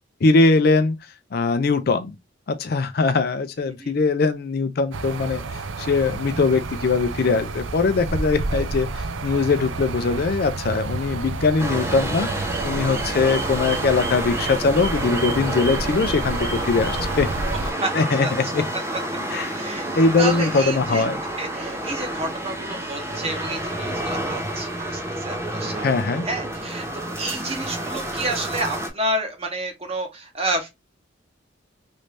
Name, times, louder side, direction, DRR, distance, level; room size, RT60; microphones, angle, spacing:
voice 1, 0.2-1.0 1.3-2.1 2.5-17.3 17.9-18.3 18.5-18.6 19.3-19.5 20.0-21.2 25.8-26.3, left 4 dB, 50° left, 0.4 m, -21 dB
voice 2, 3.6-3.9 8.5-8.7 17.8-17.9 18.2-18.5 19.5-21.0 21.4-26.9 27.2-30.7, right 2 dB, 30° right, 1.0 m, -30 dB
sound 1, 4.9-17.7, right 3 dB, 80° right, 0.5 m, -30 dB
sound 2, 11.6-28.9, right 1 dB, 15° right, 0.6 m, -29 dB
3.2 x 2.6 x 3.1 m
head